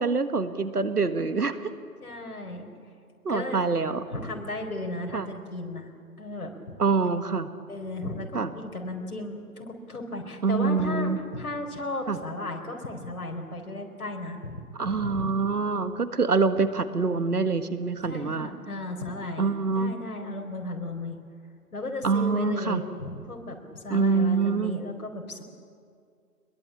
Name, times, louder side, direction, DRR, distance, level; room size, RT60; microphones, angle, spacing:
voice 1, 0.0-1.6 3.3-4.0 5.1-5.3 6.8-7.5 8.3-8.5 10.4-11.2 12.1-12.2 14.8-18.5 19.4-19.9 22.0-22.8 23.9-24.8, right 4 dB, 70° right, 10 dB, 1.8 m, -25 dB
voice 2, 2.0-2.7 3.3-3.6 4.1-5.9 6.2-6.8 7.7-15.3 18.0-21.1 21.7-25.4, left 2 dB, 65° left, 2 dB, 4.6 m, -35 dB
22.5 x 21.5 x 8.6 m, 2.2 s
figure-of-eight pair, 175°, 47 cm